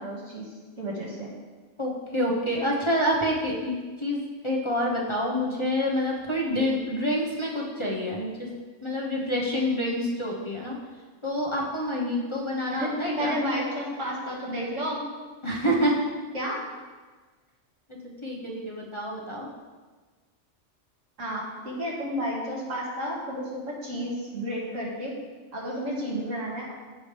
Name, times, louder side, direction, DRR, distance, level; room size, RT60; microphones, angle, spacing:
voice 1, 0.0-1.3 12.7-15.0 16.3-16.6 21.2-25.1 25.5-26.7, equal, 80° right, -4 dB, 2.4 m, -31 dB
voice 2, 1.8-8.5 8.8-10.8 11.2-13.3 15.4-16.0 17.9-19.5, equal, 25° left, -4 dB, 1.1 m, -27 dB
15.0 x 5.1 x 3.4 m, 1.4 s
omnidirectional pair, 1.3 m